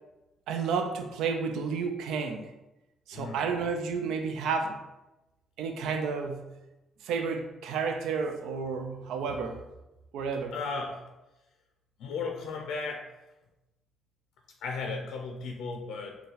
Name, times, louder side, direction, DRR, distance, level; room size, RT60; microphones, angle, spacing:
voice 1, 0.5-2.5 3.1-4.8 5.6-6.5 7.0-9.6 10.1-10.5, right 5 dB, 90° right, 6 dB, 0.4 m, -31 dB
voice 2, 10.5-11.0 12.0-13.1 14.6-16.2, left 4 dB, 85° left, 2 dB, 0.4 m, -35 dB
3.9 x 2.2 x 4.0 m, 0.97 s
cardioid pair, 90°, 0 cm